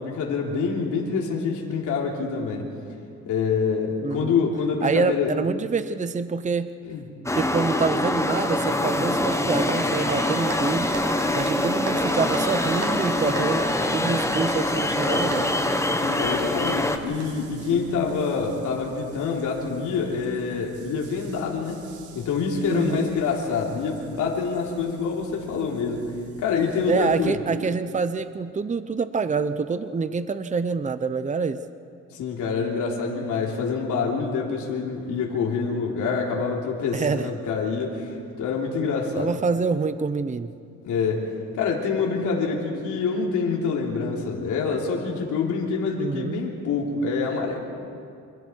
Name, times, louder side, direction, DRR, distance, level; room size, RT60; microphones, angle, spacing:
voice 1, 0.0-2.7 3.3-5.3 6.8-7.0 16.0-21.8 22.1-26.1 26.4-27.4 32.1-39.3 40.8-41.2 41.5-47.6, left 5 dB, 80° left, -1 dB, 3.4 m, -26 dB
voice 2, 4.0-4.5 4.8-6.7 7.4-10.9 11.3-15.5 22.7-23.1 26.9-31.6 36.9-37.3 39.2-40.5 46.0-46.4, right 5 dB, 25° right, 12 dB, 0.8 m, -26 dB
sound 1, 7.3-17.0, left 1 dB, 10° left, 1.4 m, -24 dB
Applause, 8.0-18.0, right 3 dB, 55° right, 6.2 m, -37 dB
sound 2, 11.9-27.1, right 1 dB, 80° right, 2.7 m, -49 dB
28.0 x 26.0 x 4.7 m, 2.4 s
cardioid pair, 90°, 30 cm